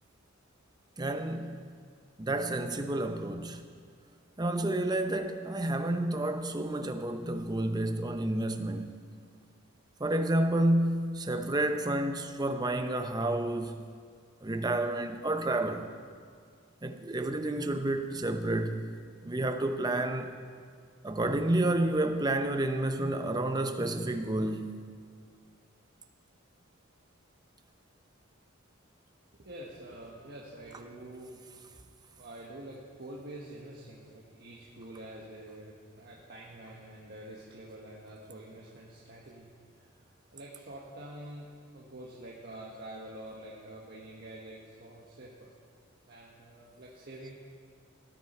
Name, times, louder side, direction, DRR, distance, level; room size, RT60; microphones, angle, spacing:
voice 1, 1.0-1.7 2.2-3.6 4.4-8.9 10.0-13.9 14.4-15.9 16.8-18.9 19.2-20.4 21.0-24.8, right 1 dB, 20° right, 0.7 m, -30 dB
voice 2, 29.3-31.5 32.1-40.0 40.3-41.5 41.7-45.5 46.1-47.3, right 1 dB, 50° right, 1.4 m, -47 dB
16.5 x 9.7 x 4.4 m
head